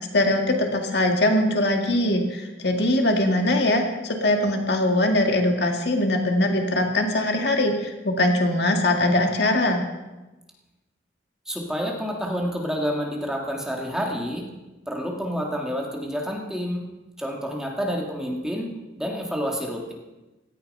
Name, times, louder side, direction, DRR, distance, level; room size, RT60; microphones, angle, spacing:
voice 1, 0.1-9.8, left 1 dB, 60° left, 3 dB, 2.1 m, -22 dB
voice 2, 11.5-14.5 14.9-16.8 17.2-19.9, equal, 5° right, -1 dB, 2.1 m, -29 dB
17.5 x 13.5 x 5.6 m, 1.1 s
head